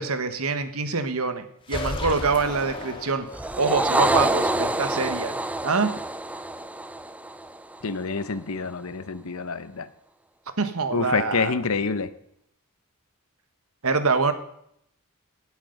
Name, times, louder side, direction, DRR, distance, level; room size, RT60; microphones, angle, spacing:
voice 1, 0.0-5.4 5.6-5.9 10.6-11.5 13.8-14.3, right 4 dB, 70° right, 9 dB, 1.4 m, -25 dB
sound 1, 1.6-3.7, left 1 dB, 25° left, 2.0 m, -33 dB
sound 2, 3.3-7.9, right 1 dB, 5° right, 0.5 m, -26 dB
voice 2, 7.8-9.9 10.9-12.1, left 4 dB, 70° left, 14 dB, 0.8 m, -27 dB
17.5 x 8.3 x 5.3 m, 0.72 s
head